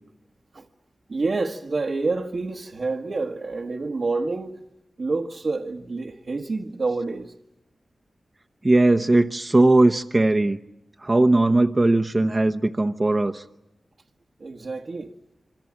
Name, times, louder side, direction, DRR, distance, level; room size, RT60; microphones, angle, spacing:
voice 1, 1.1-4.6 5.0-7.3 14.4-15.1, right 3 dB, 65° right, 1.4 m, -28 dB
voice 2, 8.6-10.6 11.0-13.4, right 2 dB, 35° right, 0.9 m, -19 dB
26.5 x 24.5 x 8.8 m
cardioid pair, 55°, 0 cm